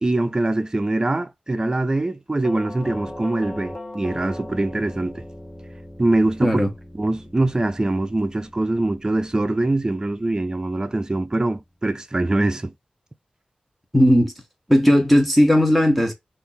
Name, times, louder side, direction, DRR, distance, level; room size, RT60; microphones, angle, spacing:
voice 1, 0.0-5.2 6.0-6.6 6.9-12.7, right 2 dB, 25° right, 0.5 m, -23 dB
Doorbell, 2.4-11.3, left 1 dB, 20° left, 1.0 m, -40 dB
voice 2, 13.9-14.3 14.7-16.1, equal, ahead, 1.2 m, -16 dB
3.5 x 2.6 x 3.9 m
wide cardioid pair, 95°, 3 cm